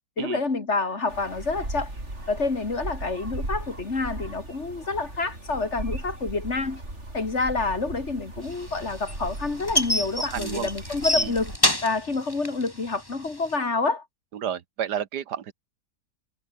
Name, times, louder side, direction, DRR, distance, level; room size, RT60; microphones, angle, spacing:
voice 1, 0.2-1.9 2.3-6.8 7.1-11.5 11.8-14.0, left 3 dB, 45° left, 2.7 m, -28 dB
sound 1, 1.1-11.6, right 1 dB, 40° right, 7.0 m, -37 dB
sound 2, 8.5-13.5, left 1 dB, 15° left, 3.1 m, -27 dB
voice 2, 10.3-10.7 11.2-11.3 14.3-15.5, right 9 dB, 85° right, 1.7 m, -31 dB
omnidirectional pair, 1.7 m